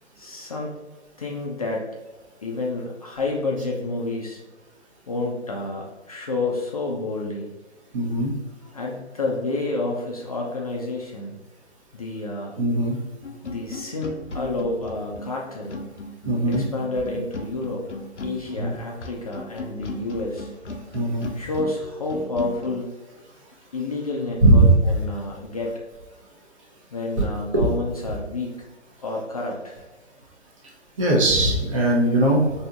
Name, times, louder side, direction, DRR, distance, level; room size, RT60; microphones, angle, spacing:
voice 1, 0.2-0.7 1.2-1.9 2.4-4.4 5.1-7.5 8.7-11.4 11.9-12.6 13.4-15.8 16.5-17.9 18.2-20.5 21.3-22.9 23.7-25.8 26.9-28.5 29.0-29.8, left 2 dB, 35° left, -2 dB, 0.4 m, -29 dB
voice 2, 7.9-8.3 12.6-13.0 16.2-16.6 18.6-18.7 20.9-21.3 24.4-24.7 31.0-32.5, right 1 dB, 30° right, -2 dB, 0.7 m, -19 dB
sound 1, 13.2-22.8, left 2 dB, 90° left, 0.6 m, -36 dB
4.3 x 2.7 x 2.4 m, 1.2 s
figure-of-eight pair, 130°, 35 cm